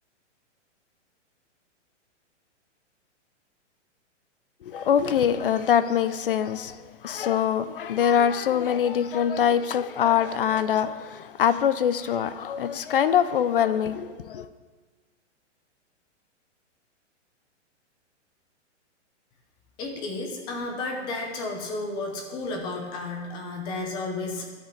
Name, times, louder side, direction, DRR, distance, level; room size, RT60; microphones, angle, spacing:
voice 1, 4.6-14.5, left 8 dB, 50° left, 0.5 m, -24 dB
voice 2, 19.8-24.4, left 2 dB, 10° left, 0.7 m, -32 dB
12.0 x 5.8 x 6.8 m
hypercardioid pair, 170°, 36 cm